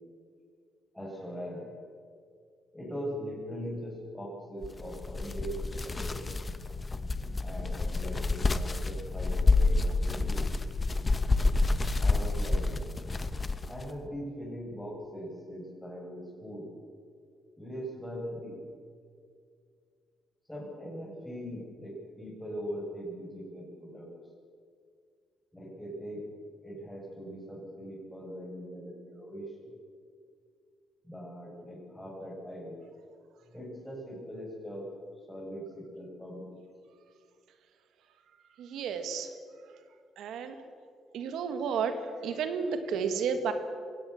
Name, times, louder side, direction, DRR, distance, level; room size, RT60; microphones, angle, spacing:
voice 1, 0.9-1.7 2.7-6.3 7.4-10.5 12.0-12.8 13.7-16.7 17.6-18.6 20.5-24.1 25.5-26.3 26.6-29.7 31.0-32.8 33.5-35.0 35.3-36.6, equal, 5° left, -3 dB, 7.6 m, -41 dB
sound 1, 4.6-13.9, left 3 dB, 25° left, 1.0 m, -28 dB
voice 2, 38.6-39.3 40.2-40.6 41.1-43.5, right 6 dB, 80° right, 8 dB, 2.0 m, -32 dB
22.5 x 17.0 x 7.3 m, 2.2 s
cardioid pair, 90°, 0 cm